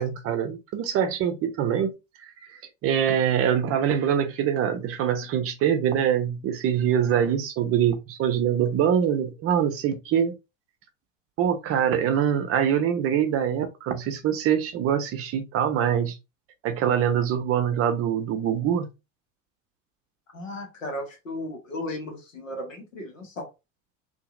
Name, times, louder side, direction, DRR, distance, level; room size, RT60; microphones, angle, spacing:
voice 1, 0.0-1.9 2.2-2.3 2.8-10.3 11.4-16.2 16.6-18.9, right 9 dB, 35° right, 0.6 m, -24 dB
voice 2, 20.3-23.5, left 1 dB, 85° left, 1.1 m, -35 dB
2.7 x 2.5 x 2.4 m
figure-of-eight pair, 70°, 38 cm